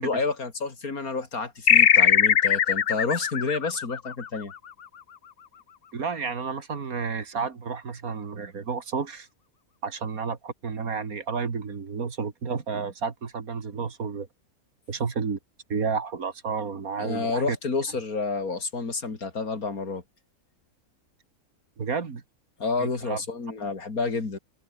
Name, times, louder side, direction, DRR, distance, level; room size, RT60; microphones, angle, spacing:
voice 1, 0.0-4.5 17.0-20.0 22.6-24.4, left 4 dB, 75° left, 3.5 m, -29 dB
sound 1, 1.7-4.7, left 8 dB, 45° left, 0.9 m, -20 dB
voice 2, 5.9-9.3 9.8-14.3 14.9-15.4 15.7-17.6 21.8-22.2 22.8-23.2, right 5 dB, 70° right, 2.5 m, -31 dB
omnidirectional pair, 1.5 m